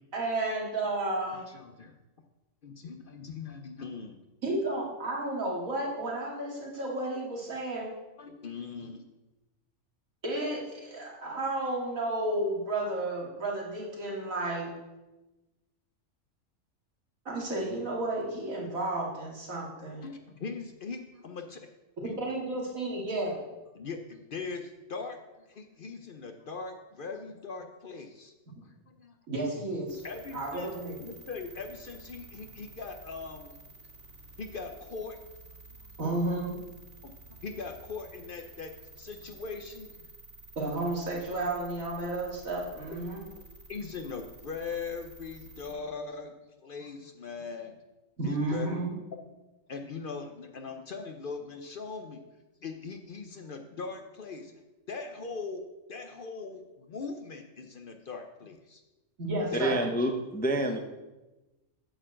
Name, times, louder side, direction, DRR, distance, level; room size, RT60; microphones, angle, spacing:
voice 1, 0.1-1.4 4.4-7.9 10.2-14.7 17.2-20.1 22.2-23.4 29.3-30.0 30.3-31.0 36.0-36.5 40.6-43.2 48.2-48.9 59.2-59.8, right 2 dB, 90° right, -4 dB, 2.7 m, -32 dB
voice 2, 1.3-1.9 2.6-4.2 8.2-9.1 20.0-21.6 22.0-22.1 23.7-28.3 28.6-29.2 30.0-30.7 31.0-33.6 34.4-35.2 37.0-40.1 43.7-46.3 46.6-47.8 48.2-48.7 49.7-52.2 52.6-54.5 54.9-55.6 55.9-58.8 59.5-59.7, left 4 dB, 50° left, 5 dB, 0.7 m, -40 dB
sound 1, 29.9-45.7, right 2 dB, 50° right, 2.2 m, -51 dB
voice 3, 59.5-60.8, right 1 dB, 10° left, 4 dB, 0.4 m, -28 dB
9.0 x 4.6 x 7.4 m, 1.1 s
omnidirectional pair, 1.4 m